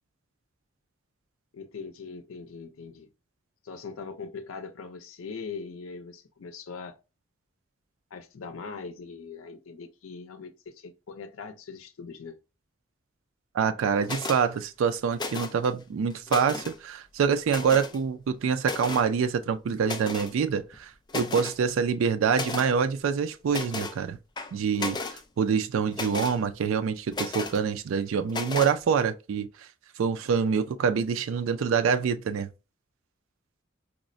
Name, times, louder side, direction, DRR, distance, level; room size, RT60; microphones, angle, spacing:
voice 1, 1.5-3.1 3.6-6.9 8.1-12.3, left 5 dB, 80° left, 0.5 m, -41 dB
voice 2, 13.5-24.2 24.5-29.7 30.0-32.5, right 6 dB, 70° right, 0.3 m, -26 dB
sound 1, 14.0-14.4 15.1-15.7 16.1-16.8 17.5-18.0 18.6-19.1 19.8-20.3 20.7-20.8 21.1-21.6 22.3-22.7 23.5-24.0 24.4-25.2 25.9-26.4 27.1-27.6 28.3-28.7, left 3 dB, 20° left, 0.3 m, -34 dB
4.8 x 2.0 x 2.5 m
head